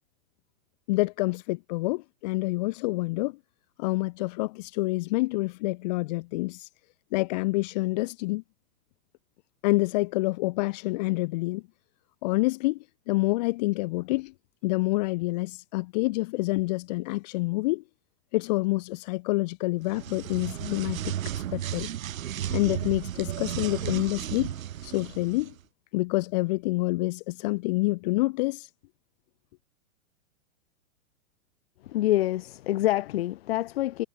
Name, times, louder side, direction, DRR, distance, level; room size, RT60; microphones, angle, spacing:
voice 1, 0.9-3.4 3.8-6.7 7.1-8.4 9.6-11.6 12.2-14.3 14.6-17.8 18.3-21.9 22.5-24.5 24.8-25.5 25.9-28.7, left 22 dB, 30° left, 1.3 m, -27 dB
sound 1, 19.8-25.5, right 11 dB, 85° right, 1.6 m, -34 dB
voice 2, 31.8-34.1, left 15 dB, 50° left, 2.8 m, -26 dB
supercardioid pair, 170°, 40 cm